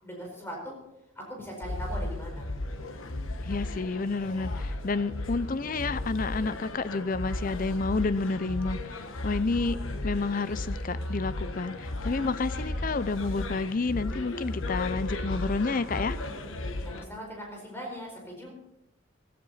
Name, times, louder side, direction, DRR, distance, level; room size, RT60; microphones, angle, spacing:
voice 1, 0.0-0.7 1.2-2.9 16.8-18.6, equal, 10° left, -1 dB, 4.5 m, -40 dB
sound 1, 1.6-17.0, left 2 dB, 70° left, 1.3 m, -35 dB
voice 2, 3.4-16.2, left 3 dB, 40° left, 15 dB, 0.5 m, -30 dB
16.0 x 15.0 x 4.2 m, 0.85 s
head